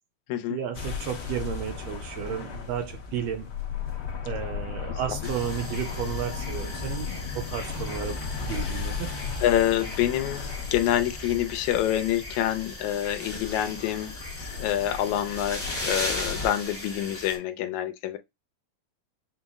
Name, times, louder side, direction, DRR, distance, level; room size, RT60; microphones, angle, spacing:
voice 1, 0.5-3.5 4.2-8.2 8.5-9.1, right 8 dB, 75° right, 1.6 m, -33 dB
sound 1, 0.7-16.5, left 5 dB, 65° left, 1.0 m, -36 dB
sound 2, 5.2-17.4, left 1 dB, 15° left, 0.5 m, -38 dB
voice 2, 9.4-18.2, left 12 dB, 85° left, 2.0 m, -27 dB
6.0 x 2.0 x 3.4 m
omnidirectional pair, 3.3 m